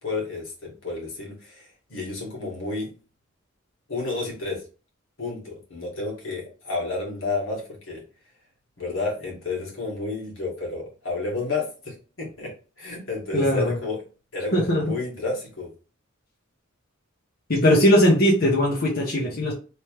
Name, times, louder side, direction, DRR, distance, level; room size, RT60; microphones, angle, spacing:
voice 1, 0.0-2.9 3.9-4.6 5.2-8.0 8.8-14.0 14.3-15.7, left 3 dB, 75° left, -2 dB, 1.7 m, -31 dB
voice 2, 13.3-13.8 14.5-14.8 17.5-19.5, equal, 50° left, -4 dB, 0.9 m, -19 dB
3.2 x 3.1 x 3.0 m, 0.35 s
head